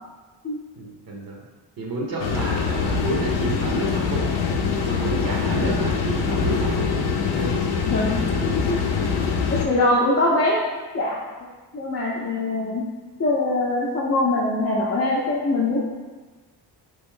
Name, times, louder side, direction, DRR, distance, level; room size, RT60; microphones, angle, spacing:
voice 1, 0.8-1.4 1.8-4.3 4.9-6.9 7.4-7.6, right 2 dB, 55° right, -2 dB, 0.7 m, -30 dB
sound 1, 2.2-9.7, left 5 dB, 80° left, 0.6 m, -24 dB
voice 2, 7.8-8.8 9.5-10.6 10.9-11.2 11.7-12.9 13.2-15.8, left 2 dB, 35° left, -6 dB, 0.5 m, -23 dB
3.0 x 2.5 x 3.6 m, 1.3 s
cardioid pair, 95°, 42 cm